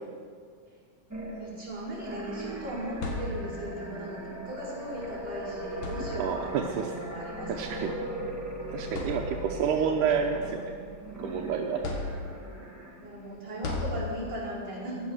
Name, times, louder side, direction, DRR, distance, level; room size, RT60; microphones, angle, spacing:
sound 1, 1.1-13.4, right 1 dB, 10° right, 1.2 m, -39 dB
voice 1, 1.3-7.9 13.0-15.1, right 1 dB, 35° right, -8 dB, 5.7 m, -38 dB
sound 2, 2.7-3.8 5.1-5.2 5.7-6.6 7.7-7.8 8.4-8.5 8.9-9.7 10.2-11.3 11.8-12.6 13.6-14.5, left 3 dB, 85° left, 3.3 m, -36 dB
voice 2, 6.1-6.9 7.5-7.9 8.7-10.7 11.2-11.8, right 7 dB, 85° right, 3 dB, 2.3 m, -29 dB
15.5 x 11.0 x 6.4 m, 2.1 s
omnidirectional pair, 3.5 m